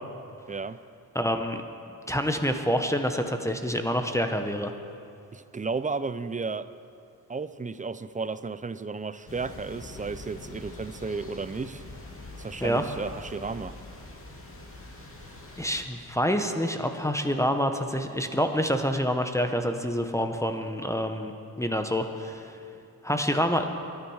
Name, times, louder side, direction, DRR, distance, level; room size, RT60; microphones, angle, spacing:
voice 1, 0.5-0.8 5.3-6.7 7.3-11.8 12.4-13.8, right 4 dB, 20° right, 14 dB, 0.5 m, -33 dB
voice 2, 1.1-1.6 2.1-4.7 12.6-12.8 15.6-21.3 21.6-22.5 23.0-23.7, equal, 10° left, 6 dB, 1.0 m, -27 dB
sound 1, 9.2-15.8, left 2 dB, 35° left, 2.5 m, -44 dB
24.0 x 10.5 x 4.8 m, 2.5 s
cardioid pair, 80°, 37 cm